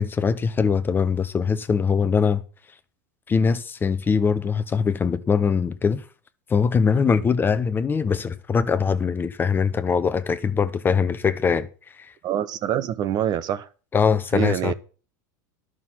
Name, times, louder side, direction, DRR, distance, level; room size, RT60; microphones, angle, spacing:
voice 1, 0.0-2.4 3.3-6.0 6.5-11.7 12.0-12.1 13.9-14.7, left 6 dB, 20° left, 0.8 m, -22 dB
voice 2, 12.2-13.7 14.3-14.7, right 10 dB, 45° right, 0.9 m, -25 dB
11.0 x 6.4 x 7.5 m
supercardioid pair, 110°, 10 cm